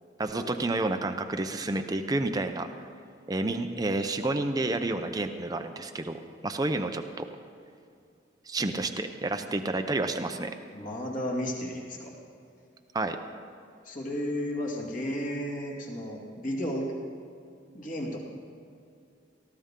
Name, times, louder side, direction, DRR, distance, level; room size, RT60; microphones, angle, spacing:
voice 1, 0.2-2.7 3.3-7.2 8.5-10.5 12.9-13.2, right 2 dB, 20° right, 6 dB, 0.6 m, -30 dB
voice 2, 10.7-12.1 13.8-16.9 17.7-18.2, equal, 45° left, -2 dB, 2.4 m, -33 dB
18.5 x 14.0 x 3.8 m, 2.5 s
head